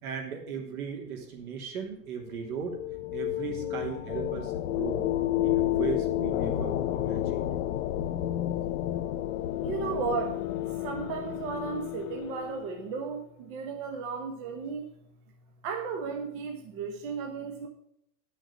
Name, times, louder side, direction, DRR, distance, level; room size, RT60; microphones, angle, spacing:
voice 1, 0.0-2.8 3.1-5.0 5.4-7.4, right 7 dB, 60° right, 1 dB, 3.1 m, -37 dB
sound 1, 2.3-12.9, left 13 dB, 55° left, 0.7 m, -31 dB
voice 2, 9.6-10.4 10.8-14.9 15.6-17.7, right 5 dB, 30° right, 4 dB, 0.9 m, -34 dB
10.0 x 6.4 x 7.1 m, 0.76 s
supercardioid pair, 160°, 49 cm